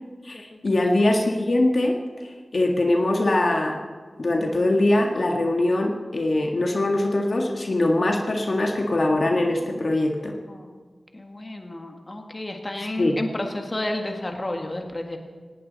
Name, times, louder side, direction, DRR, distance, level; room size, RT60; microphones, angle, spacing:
voice 1, 0.2-2.0 2.5-3.8 4.2-10.4 12.8-13.2, left 1 dB, 55° left, 2 dB, 1.7 m, -22 dB
voice 2, 9.3-9.8 10.5-10.7 11.1-15.2, left 1 dB, 30° left, 3 dB, 1.9 m, -31 dB
18.5 x 18.0 x 4.2 m, 1.5 s
wide cardioid pair, 80°, 0 cm